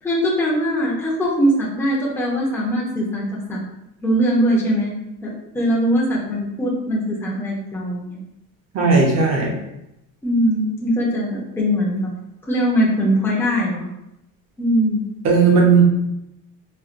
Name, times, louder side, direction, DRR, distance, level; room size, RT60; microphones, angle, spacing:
voice 1, 0.0-3.6 4.0-4.9 5.2-8.2 10.2-12.1 12.5-13.9 14.6-15.0, equal, 5° left, -5 dB, 0.7 m, -21 dB
voice 2, 8.7-9.5 15.2-15.8, right 4 dB, 45° right, -1 dB, 0.8 m, -15 dB
4.4 x 2.2 x 2.5 m, 0.86 s
cardioid pair, 150°, 35 cm